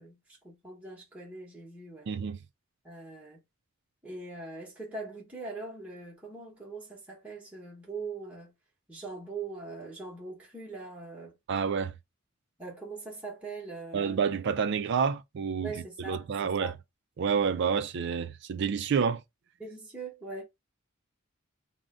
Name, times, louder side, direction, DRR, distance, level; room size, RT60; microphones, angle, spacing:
voice 1, 0.0-2.1 2.8-3.4 4.0-8.5 8.9-11.4 12.6-14.3 15.6-16.7 19.6-20.4, right 3 dB, 5° right, 0.9 m, -42 dB
voice 2, 2.1-2.4 11.5-11.9 13.9-16.7 17.2-19.2, right 6 dB, 55° right, 0.3 m, -29 dB
2.5 x 2.1 x 3.5 m
head